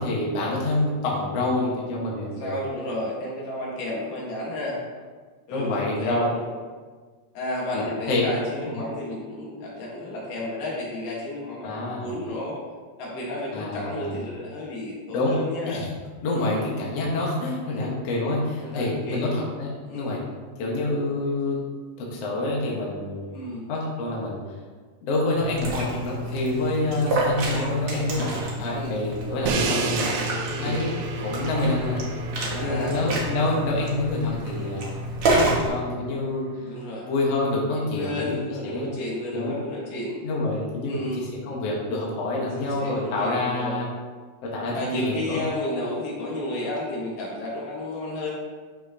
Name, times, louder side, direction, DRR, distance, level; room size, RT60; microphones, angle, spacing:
voice 1, 0.0-2.5 5.5-6.4 7.7-8.3 8.6-8.7 11.6-12.1 13.5-14.2 15.1-15.4 15.7-15.9 16.2-20.2 20.6-21.6 22.0-23.4 23.7-24.4 25.0-32.0 32.4-35.0 35.3-36.5 37.0-38.9 39.3-39.5 40.2-43.9 44.4-45.4, left 2 dB, 55° left, -4 dB, 2.2 m, -27 dB
voice 2, 2.3-4.8 5.5-6.5 7.3-12.6 13.0-15.8 16.4-16.6 17.7-17.9 18.6-19.3 19.9-20.2 23.3-23.7 28.2-28.4 28.7-28.9 30.5-30.8 32.5-33.2 36.6-37.1 37.9-40.2 40.9-41.3 42.6-43.8 44.7-48.3, left 1 dB, 70° left, -4 dB, 3.3 m, -32 dB
Liquid, 25.4-35.7, right 1 dB, 55° right, 1.7 m, -29 dB
Crash cymbal, 29.5-35.4, right 4 dB, 70° right, 2.0 m, -32 dB
11.5 x 6.0 x 2.9 m, 1.5 s
omnidirectional pair, 4.1 m